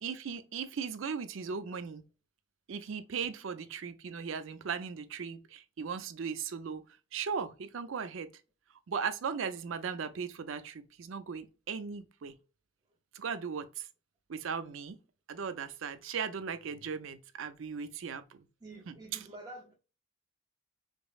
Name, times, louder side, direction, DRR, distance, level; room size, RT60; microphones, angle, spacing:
voice 1, 0.0-2.0 2.7-6.8 7.1-8.3 8.9-12.3 13.1-13.9 14.3-15.0 15.3-18.5 18.9-19.3, right 6 dB, 80° right, 0.5 m, -37 dB
voice 2, 18.6-19.8, right 2 dB, 20° right, 0.5 m, -48 dB
5.1 x 2.0 x 2.3 m
head